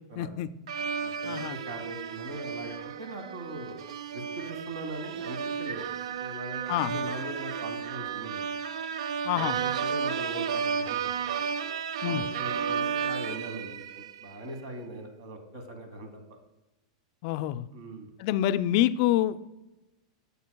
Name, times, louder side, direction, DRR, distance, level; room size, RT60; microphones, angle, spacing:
voice 1, 0.2-0.5 1.2-1.6 6.7-7.0 9.3-9.6 12.0-12.2 17.2-17.7 18.2-19.4, left 12 dB, 50° left, 14 dB, 0.3 m, -27 dB
sound 1, 0.7-14.4, right 7 dB, 85° right, 0.4 m, -33 dB
voice 2, 1.0-3.8 4.1-8.4 9.3-11.3 12.0-16.1 17.7-18.1, right 1 dB, 60° right, 7 dB, 1.4 m, -41 dB
9.3 x 6.9 x 2.2 m, 1.0 s
supercardioid pair, 150°, 3 cm